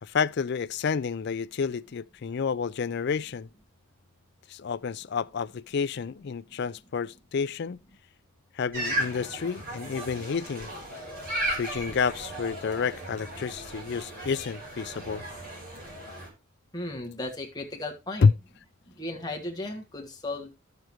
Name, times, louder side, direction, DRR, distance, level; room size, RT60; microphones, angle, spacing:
voice 1, 0.0-3.5 4.5-7.8 8.5-10.7 11.6-15.2 18.2-18.3, left 5 dB, 50° left, 0.4 m, -29 dB
sound 1, 8.7-16.3, right 1 dB, 40° right, 4.0 m, -35 dB
voice 2, 16.7-18.3 18.9-20.5, left 2 dB, 20° left, 1.4 m, -35 dB
12.5 x 6.8 x 3.0 m
head